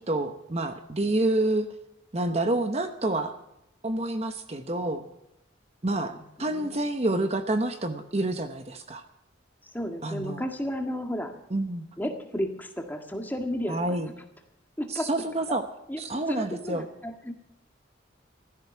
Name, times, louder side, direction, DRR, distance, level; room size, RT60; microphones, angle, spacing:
voice 1, 0.0-1.7 2.1-3.3 3.8-5.0 5.8-6.1 6.4-9.0 10.0-10.4 11.5-11.9 13.7-14.1 15.0-15.6 16.0-16.9, right 2 dB, 35° right, 8 dB, 1.0 m, -28 dB
voice 2, 6.0-6.9 9.6-11.3 12.0-14.1 14.8-15.1 15.9-16.0 16.3-17.3, equal, 10° left, 4 dB, 1.8 m, -33 dB
15.5 x 13.5 x 6.0 m, 0.83 s
head